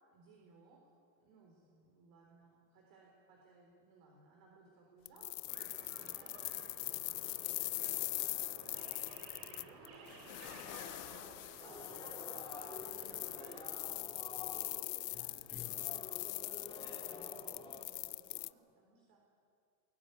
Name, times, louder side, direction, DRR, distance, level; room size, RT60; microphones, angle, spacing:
voice 1, 0.1-0.8 1.2-8.2 8.4-11.2 11.6-12.6 12.9-19.2, right 3 dB, 45° right, 0 dB, 4.2 m, -63 dB
sound 1, 5.1-18.5, left 21 dB, 80° left, 0.8 m, -42 dB
sound 2, 5.5-13.6, right 4 dB, 80° right, 5.8 m, -55 dB
sound 3, 11.6-17.9, left 3 dB, 10° left, 2.3 m, -50 dB
22.0 x 21.5 x 9.8 m, 2.4 s
supercardioid pair, 170°, 48 cm